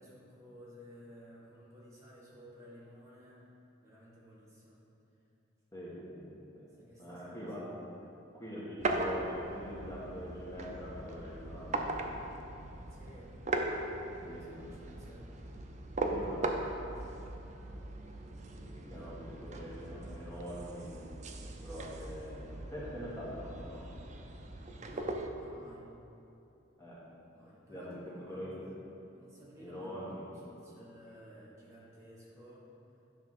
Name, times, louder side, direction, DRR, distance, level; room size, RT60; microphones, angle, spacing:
voice 1, 0.0-3.5 3.8-4.8 6.6-8.2 12.9-13.3 13.7-15.3 17.0-17.1 18.9-19.5 24.7-25.8 27.3-28.5 29.1-32.7, equal, 15° right, -7 dB, 1.4 m, -55 dB
voice 2, 5.7-6.7 7.0-7.7 8.3-12.3 14.2-14.7 16.0-16.5 18.6-21.1 21.6-23.8 26.8-27.0 27.7-28.0 28.3-28.7 29.6-30.2, equal, 15° left, -8 dB, 1.3 m, -44 dB
sound 1, 8.8-25.3, right 2 dB, 35° right, 0.5 m, -39 dB
9.7 x 3.5 x 6.0 m, 2.9 s
head